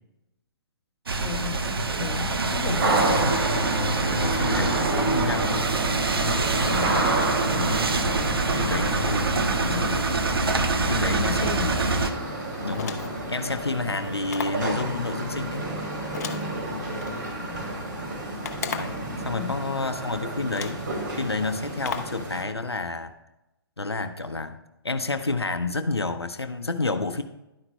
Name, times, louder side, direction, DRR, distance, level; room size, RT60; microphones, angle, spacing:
voice 1, 1.1-3.3 6.6-7.2 7.5-7.8 9.4-9.8 10.8-11.8 17.4-17.6 19.3-19.7, left 7 dB, 15° left, -3 dB, 1.6 m, -35 dB
sound 1, 1.1-12.1, right 3 dB, 65° right, 0.9 m, -25 dB
sound 2, 2.8-22.4, right 2 dB, 50° right, 2.3 m, -30 dB
voice 2, 4.2-5.7 8.0-10.0 10.8-11.5 12.6-15.7 18.7-20.8 21.2-23.1 23.8-24.6 24.8-27.2, left 3 dB, 85° left, 8 dB, 0.6 m, -30 dB
sound 3, 12.7-13.3 14.3-14.7 16.1-17.1 18.4-19.1 20.0-20.1 20.5-20.9 21.8-22.2, left 7 dB, 40° left, 0.8 m, -35 dB
11.5 x 9.6 x 2.2 m, 0.94 s
figure-of-eight pair, 130°, 13 cm